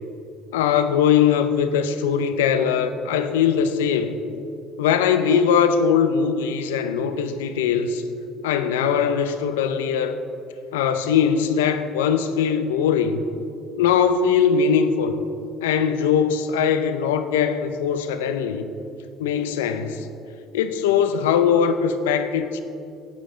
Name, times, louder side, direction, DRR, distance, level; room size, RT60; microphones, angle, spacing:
voice 1, 0.5-4.2 4.8-8.0 8.4-10.2 10.7-13.2 13.8-15.2 15.6-18.6 19.2-20.1 20.5-22.6, left 7 dB, 85° left, 0.6 m, -21 dB
14.0 x 9.0 x 3.8 m
hypercardioid pair, 65°, 0 cm